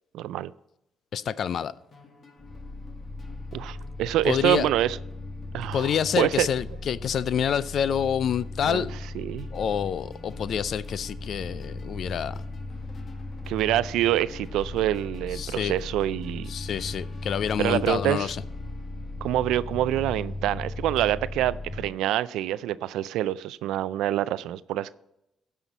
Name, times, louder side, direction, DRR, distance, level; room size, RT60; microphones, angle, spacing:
voice 1, 0.1-0.5 3.5-5.0 5.5-6.5 8.6-8.8 9.1-9.5 13.5-16.5 17.6-18.3 19.2-24.9, right 13 dB, 90° right, 0.3 m, -26 dB
voice 2, 1.1-1.7 4.2-4.7 5.7-8.9 9.5-12.4 15.3-15.8 16.5-18.4, left 8 dB, 60° left, 0.4 m, -27 dB
sound 1, 1.3-19.3, left 5 dB, 45° left, 1.6 m, -51 dB
sound 2, 2.4-21.9, left 2 dB, 20° left, 1.3 m, -37 dB
16.0 x 5.7 x 4.0 m
cardioid pair, 90°, 0 cm